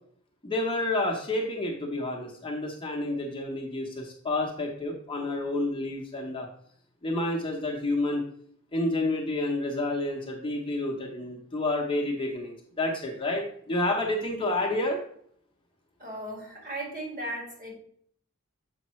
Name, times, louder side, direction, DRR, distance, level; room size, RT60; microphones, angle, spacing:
voice 1, 0.4-6.5 7.0-8.2 8.7-15.0, left 2 dB, 25° left, 0 dB, 0.9 m, -29 dB
voice 2, 16.0-17.7, right 1 dB, 40° right, -3 dB, 2.4 m, -36 dB
7.1 x 5.1 x 3.1 m, 0.64 s
head